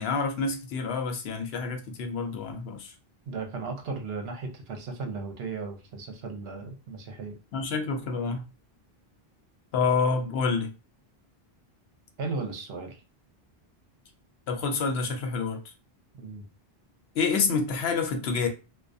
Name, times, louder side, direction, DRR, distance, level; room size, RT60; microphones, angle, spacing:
voice 1, 0.0-2.9 7.5-8.4 9.7-10.7 14.5-15.6 17.2-18.5, left 4 dB, 75° left, 0.8 m, -28 dB
voice 2, 3.3-7.3 12.2-13.0 16.2-16.5, right 4 dB, 75° right, 0.9 m, -36 dB
2.3 x 2.2 x 2.5 m
omnidirectional pair, 1.1 m